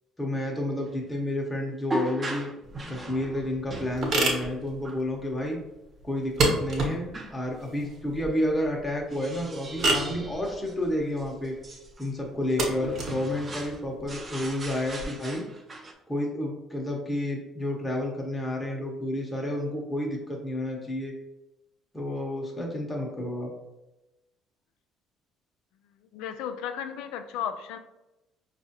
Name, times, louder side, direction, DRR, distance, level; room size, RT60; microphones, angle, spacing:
voice 1, 0.2-2.5 2.9-5.6 6.0-11.5 12.0-15.4 16.1-21.1 21.9-23.5, left 1 dB, 15° left, -1 dB, 0.9 m, -30 dB
sound 1, 0.8-0.9 1.9-4.0 4.8-5.0 7.1-7.4 9.1-12.1 12.5-12.6 12.9-13.8 14.1-15.9, right 1 dB, 30° right, 0.6 m, -38 dB
sound 2, 2.6-15.0, right 2 dB, 55° right, 1.0 m, -31 dB
voice 2, 26.1-27.8, left 8 dB, 80° left, 8 dB, 0.3 m, -34 dB
4.7 x 2.4 x 2.8 m, 0.99 s
supercardioid pair, 90°, 0 cm